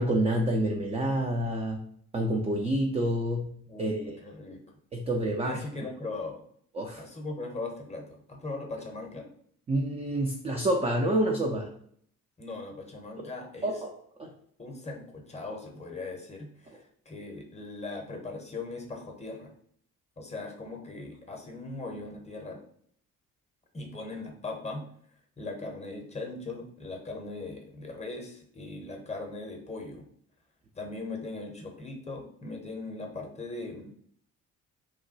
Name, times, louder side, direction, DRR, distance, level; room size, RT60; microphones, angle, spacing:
voice 1, 0.0-1.8 2.1-4.0 4.9-5.6 6.7-7.0 9.7-11.7 13.6-13.9 14.2-14.3, right 1 dB, 15° right, 1 dB, 0.3 m, -28 dB
voice 2, 3.7-4.6 5.4-6.4 7.0-9.3 12.4-13.8 14.6-19.5 20.2-22.6 23.7-24.8 25.4-30.1 30.7-33.9, left 3 dB, 15° left, 2 dB, 0.7 m, -39 dB
2.9 x 2.2 x 2.6 m, 0.63 s
figure-of-eight pair, 40°, 44 cm